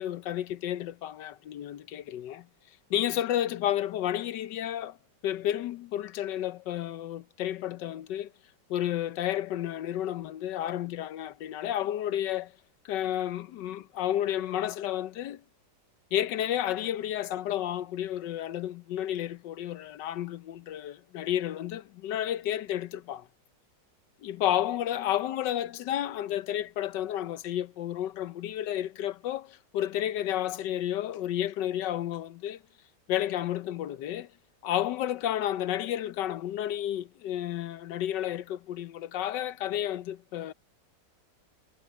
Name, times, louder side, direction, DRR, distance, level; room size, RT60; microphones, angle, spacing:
voice 1, 0.0-2.5 2.9-5.0 5.2-8.3 8.7-12.5 12.8-15.4 16.1-23.3 24.2-32.6 33.1-34.3 34.6-40.5, left 11 dB, 75° left, 1.4 m, -31 dB
omnidirectional pair, 2.0 m